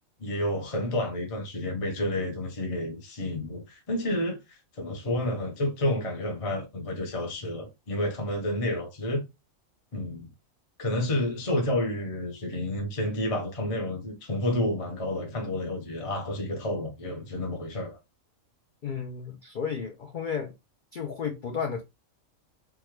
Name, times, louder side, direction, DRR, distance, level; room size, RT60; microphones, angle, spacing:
voice 1, 0.2-9.2 9.9-10.3 10.8-18.0, left 1 dB, 35° left, 0.6 m, -30 dB
voice 2, 18.8-20.5 20.9-21.8, left 6 dB, 80° left, 0.4 m, -33 dB
3.6 x 2.2 x 3.0 m
omnidirectional pair, 1.5 m